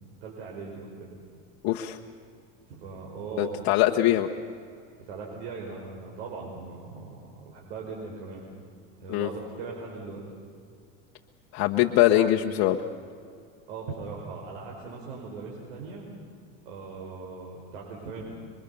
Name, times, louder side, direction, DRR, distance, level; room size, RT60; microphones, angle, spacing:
voice 1, 0.2-1.1 2.7-3.7 5.0-8.4 9.0-10.2 13.7-16.1 16.6-18.2, right 4 dB, 85° right, -1 dB, 5.0 m, -39 dB
voice 2, 1.6-2.0 3.4-4.3 9.1-9.3 11.5-12.8, left 14 dB, 60° left, 2 dB, 1.3 m, -22 dB
27.5 x 23.5 x 7.0 m, 2.3 s
supercardioid pair, 130°, 31 cm